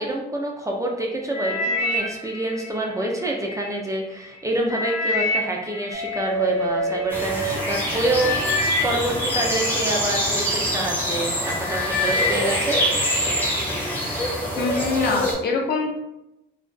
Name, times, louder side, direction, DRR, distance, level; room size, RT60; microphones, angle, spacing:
voice 1, 0.0-12.8, right 1 dB, 15° right, 0 dB, 0.4 m, -27 dB
sound 1, 1.3-3.7 4.2-7.0 7.7-7.9 8.1-10.5 11.0-11.3 11.6-13.1 13.5-14.0 14.6-14.7, left 2 dB, 75° left, 0.9 m, -28 dB
sound 2, 5.9-8.3 10.0-10.1 11.9-12.1, right 3 dB, 85° right, 0.7 m, -27 dB
sound 3, 7.1-15.3, equal, 10° left, 0.8 m, -25 dB
voice 2, 14.6-15.9, left 4 dB, 55° left, 1 dB, 0.5 m, -24 dB
2.4 x 2.3 x 2.2 m, 0.89 s
cardioid pair, 90°, 20 cm